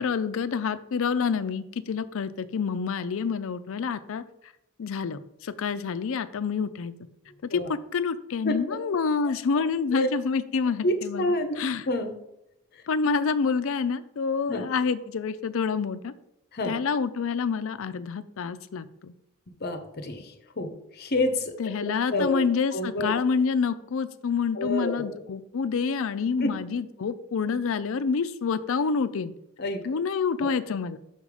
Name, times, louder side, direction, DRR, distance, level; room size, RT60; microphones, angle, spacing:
voice 1, 0.0-4.2 4.8-6.9 7.5-11.9 12.9-16.1 16.6-19.1 21.6-29.3 29.8-31.0, left 5 dB, 65° left, 13 dB, 0.4 m, -28 dB
voice 2, 10.8-12.2 14.5-14.6 16.5-16.7 19.6-20.2 20.6-21.5 21.8-22.4 22.7-23.1 24.6-25.2 26.4-26.5 29.6-29.8 30.4-30.5, left 1 dB, 45° left, 7 dB, 0.9 m, -28 dB
5.9 x 5.6 x 4.8 m, 0.83 s
head